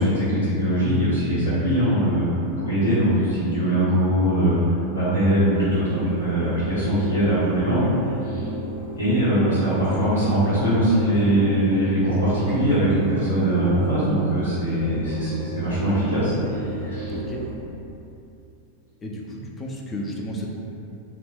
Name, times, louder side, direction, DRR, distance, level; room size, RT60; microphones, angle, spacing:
voice 1, 0.0-2.3 2.5-4.6 4.9-7.9 8.2-8.5 9.0-17.1, right 1 dB, 80° left, -13 dB, 0.8 m, -21 dB
sound 1, 5.5-17.6, right 1 dB, 60° right, 0.4 m, -33 dB
voice 2, 19.0-20.5, equal, 20° left, -1 dB, 0.4 m, -33 dB
2.8 x 2.0 x 2.9 m, 2.7 s
figure-of-eight pair, 90°, 0 cm